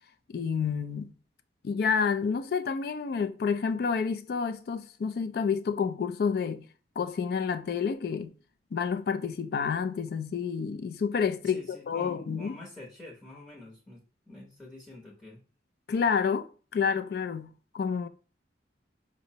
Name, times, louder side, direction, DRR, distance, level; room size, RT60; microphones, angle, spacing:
voice 1, 0.3-1.1 1.6-6.7 7.0-8.3 8.7-12.6 15.9-16.5 16.7-18.1, left 6 dB, 60° left, 0.3 m, -29 dB
voice 2, 11.4-15.4, left 2 dB, 10° left, 0.7 m, -47 dB
5.1 x 2.0 x 2.7 m
head